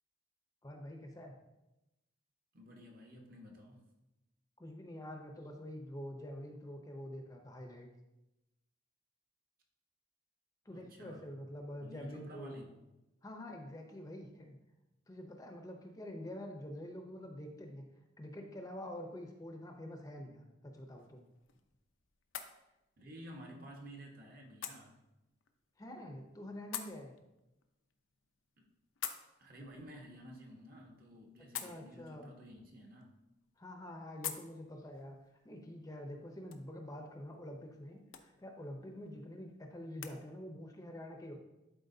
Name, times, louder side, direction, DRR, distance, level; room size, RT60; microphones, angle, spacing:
voice 1, 0.6-1.3 4.6-7.9 10.6-12.6 13.2-14.6 15.1-17.8 18.2-21.2 25.8-27.1 31.6-32.3 33.6-35.2 35.4-41.4, left 1 dB, 20° left, 2 dB, 0.6 m, -46 dB
voice 2, 2.5-3.8 10.7-11.3 11.8-12.6 23.0-25.0 28.6-28.7 29.4-33.2 35.5-35.9, equal, 50° right, 0 dB, 1.2 m, -52 dB
sound 1, 20.7-40.2, left 10 dB, 90° left, 0.6 m, -51 dB
11.5 x 4.4 x 2.7 m, 0.95 s
head